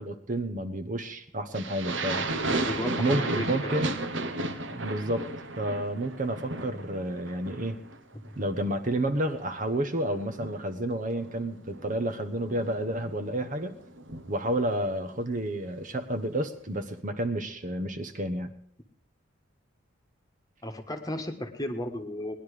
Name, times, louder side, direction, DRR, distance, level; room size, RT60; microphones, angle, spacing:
voice 1, 0.0-2.3 3.0-4.0 4.7-5.3 5.6-7.8 8.4-13.7 14.3-18.5, right 1 dB, 40° right, 8 dB, 1.0 m, -30 dB
sound 1, 1.5-8.0 8.2-8.7 9.1-14.7, right 2 dB, 60° right, 1.2 m, -34 dB
voice 2, 2.5-3.8 8.2-8.4 20.6-22.4, left 1 dB, 15° left, 5 dB, 1.4 m, -34 dB
19.5 x 11.0 x 5.0 m, 0.68 s
head